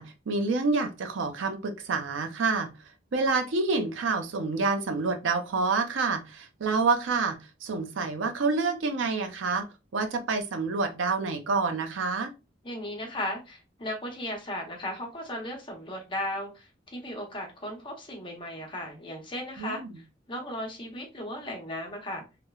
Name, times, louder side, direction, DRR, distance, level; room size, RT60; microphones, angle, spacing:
voice 1, 0.0-2.7 3.1-9.7 9.9-12.3 19.6-19.9, right 4 dB, 90° right, 0.5 m, -28 dB
voice 2, 12.6-22.3, left 1 dB, 25° left, 0.7 m, -36 dB
3.1 x 2.0 x 2.3 m
head